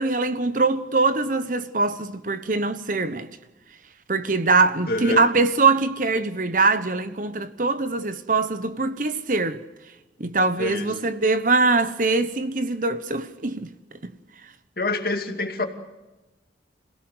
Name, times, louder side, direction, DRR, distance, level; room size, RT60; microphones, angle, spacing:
voice 1, 0.0-3.3 4.1-9.6 10.2-13.7 14.0-14.1, right 3 dB, 50° right, 1.1 m, -22 dB
voice 2, 4.9-5.2 10.6-10.9 14.8-15.6, left 2 dB, 55° left, 2.5 m, -26 dB
27.5 x 17.0 x 8.0 m
head